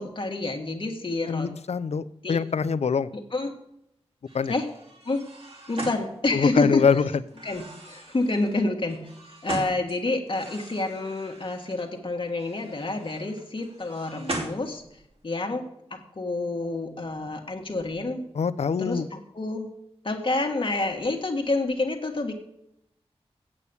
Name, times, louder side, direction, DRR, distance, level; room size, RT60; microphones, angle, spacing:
voice 1, 0.0-1.5 2.2-2.4 3.1-3.5 4.5-4.7 5.0-5.2 5.7-7.0 7.4-9.1 9.4-14.8 15.2-18.2 18.8-19.7 20.0-22.4, left 2 dB, 50° left, 2 dB, 1.6 m, -28 dB
voice 2, 1.3-3.1 4.3-4.5 6.3-7.0 18.3-19.1, left 6 dB, 75° left, 15 dB, 0.5 m, -24 dB
sound 1, 4.3-6.7 7.3-9.9 10.3-11.8 12.3-15.1, right 1 dB, 60° right, 2.8 m, -40 dB
8.5 x 8.2 x 6.9 m, 0.80 s
wide cardioid pair, 90°, 11 cm